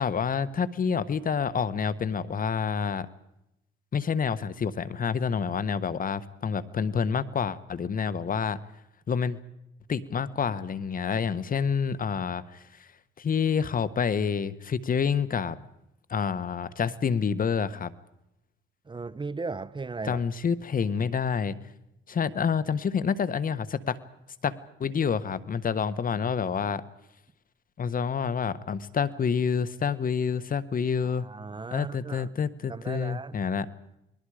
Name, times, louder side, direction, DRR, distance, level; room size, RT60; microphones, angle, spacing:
voice 1, 0.0-3.1 3.9-8.6 9.1-9.4 9.9-12.9 13.2-15.6 16.1-17.9 20.1-21.6 22.1-24.0 24.4-26.8 27.8-31.2 31.7-33.6, left 6 dB, 45° left, 1.4 m, -28 dB
voice 2, 18.8-20.2 31.0-32.3 32.7-33.4, right 4 dB, 25° right, 0.8 m, -37 dB
29.5 x 21.0 x 5.0 m
cardioid pair, 90°, 20 cm